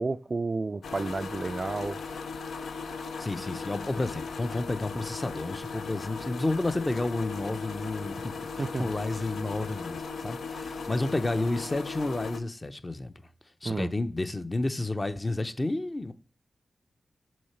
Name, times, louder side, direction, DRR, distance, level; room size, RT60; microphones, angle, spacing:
voice 1, 0.0-2.0 8.6-8.9 13.6-13.9, right 3 dB, 45° right, 0.3 m, -31 dB
sound 1, 0.8-12.4, left 4 dB, 85° left, 0.6 m, -37 dB
voice 2, 3.2-13.1 13.6-16.1, left 2 dB, 30° left, 0.7 m, -31 dB
6.3 x 3.9 x 4.4 m
cardioid pair, 45°, 0 cm